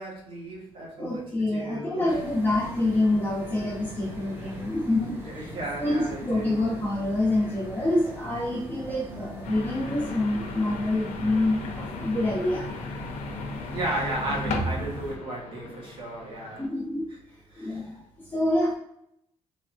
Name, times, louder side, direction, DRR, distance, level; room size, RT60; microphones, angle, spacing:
voice 1, 0.0-2.1 5.2-6.6 13.7-16.7 17.5-17.8, right 1 dB, 50° right, -3 dB, 1.0 m, -34 dB
voice 2, 1.0-5.5 5.8-12.7 16.6-17.1 17.6-17.9 18.3-18.7, left 1 dB, 15° left, -8 dB, 0.9 m, -26 dB
sound 1, 2.1-15.1, right 1 dB, 20° right, 0.6 m, -38 dB
sound 2, 9.4-16.7, left 3 dB, 85° left, 0.5 m, -37 dB
3.3 x 2.8 x 2.4 m, 0.77 s
cardioid pair, 175°, 11 cm